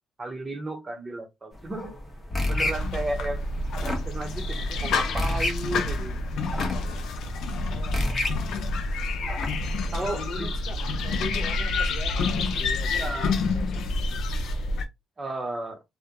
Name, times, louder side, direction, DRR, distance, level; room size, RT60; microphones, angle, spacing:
voice 1, 0.2-1.9 2.5-3.5 3.8-6.3 9.9-10.5 11.6-11.7 12.9-13.4 15.2-15.8, right 2 dB, 30° right, 0.8 m, -33 dB
sound 1, 1.5-9.6, left 2 dB, 30° left, 1.0 m, -32 dB
sound 2, 2.4-14.9, left 3 dB, 80° left, 0.4 m, -28 dB
voice 2, 7.6-8.2 8.6-8.7 10.0-14.3, left 3 dB, 55° left, 0.8 m, -41 dB
2.3 x 2.1 x 2.8 m
cardioid pair, 90°, 0 cm